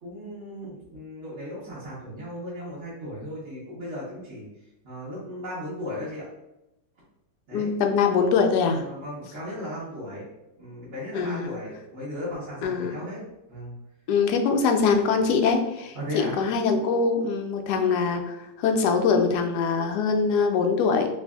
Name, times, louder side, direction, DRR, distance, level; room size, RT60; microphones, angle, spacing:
voice 1, 0.0-4.5 4.8-6.3 7.5-7.7 8.6-10.2 10.6-13.7 15.9-16.4, equal, 45° right, -10 dB, 1.3 m, -36 dB
voice 2, 7.5-8.8 11.1-11.5 12.6-13.0 14.1-16.0 16.4-21.1, left 5 dB, 75° left, 4 dB, 1.1 m, -23 dB
3.2 x 2.5 x 3.4 m, 0.91 s
omnidirectional pair, 1.8 m